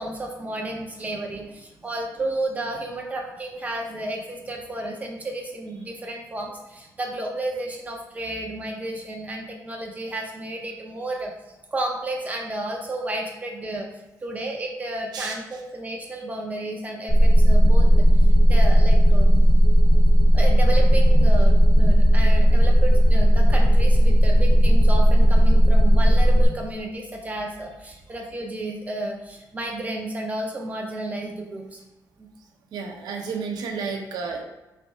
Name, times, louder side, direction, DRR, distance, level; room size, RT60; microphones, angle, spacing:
voice 1, 0.0-11.3 11.7-13.9 14.2-17.9 18.5-19.5 20.3-31.8 32.2-32.3, right 1 dB, 20° right, 0 dB, 0.5 m, -32 dB
sound 1, 17.1-26.5, equal, 40° left, 1.1 m, -15 dB
voice 2, 32.7-34.4, right 5 dB, 85° right, 1 dB, 0.7 m, -31 dB
3.4 x 3.3 x 4.3 m, 1.1 s
cardioid pair, 150°, 7 cm